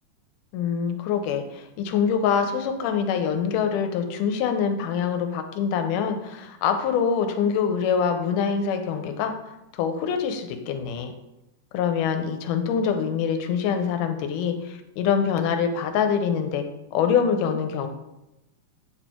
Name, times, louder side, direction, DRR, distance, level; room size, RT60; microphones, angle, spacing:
voice 1, 0.5-9.3 9.7-11.1 11.7-16.6 16.9-17.9, left 7 dB, 80° left, 7 dB, 2.2 m, -25 dB
8.6 x 4.4 x 4.4 m, 0.93 s
omnidirectional pair, 3.8 m